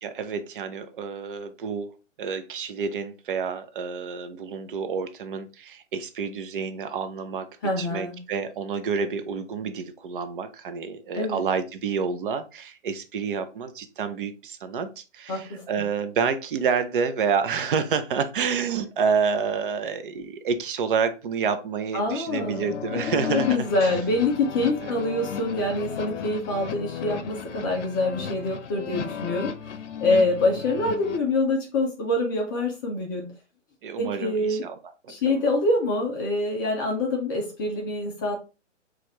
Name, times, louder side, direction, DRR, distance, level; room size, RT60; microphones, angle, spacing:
voice 1, 0.0-1.9 2.2-7.5 7.8-23.9 24.8-24.9 30.1-30.3 33.8-34.8 35.0-35.1, right 6 dB, 45° right, 10 dB, 0.6 m, -29 dB
voice 2, 7.6-8.2 11.1-11.4 15.3-15.6 21.9-29.5 30.0-33.3 34.0-34.6 35.1-38.3, left 2 dB, 20° left, 1 dB, 0.5 m, -25 dB
sound 1, 22.4-31.2, left 8 dB, 70° left, 0.7 m, -35 dB
6.2 x 2.5 x 2.9 m, 0.31 s
hypercardioid pair, 135°, 37 cm